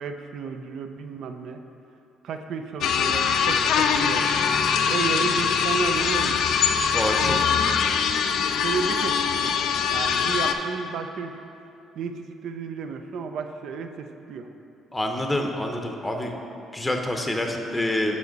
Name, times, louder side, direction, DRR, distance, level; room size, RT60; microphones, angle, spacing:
voice 1, 0.0-1.6 2.2-4.3 4.9-6.4 7.2-7.7 8.6-9.6 9.9-11.4 12.0-14.5, right 5 dB, 70° right, 6 dB, 0.4 m, -32 dB
sound 1, 2.8-10.5, left 6 dB, 75° left, 0.3 m, -23 dB
voice 2, 6.9-7.4 14.9-16.3 16.7-18.2, left 1 dB, 15° left, 3 dB, 0.6 m, -27 dB
6.8 x 5.0 x 3.9 m, 2.8 s
supercardioid pair, 70°, 0 cm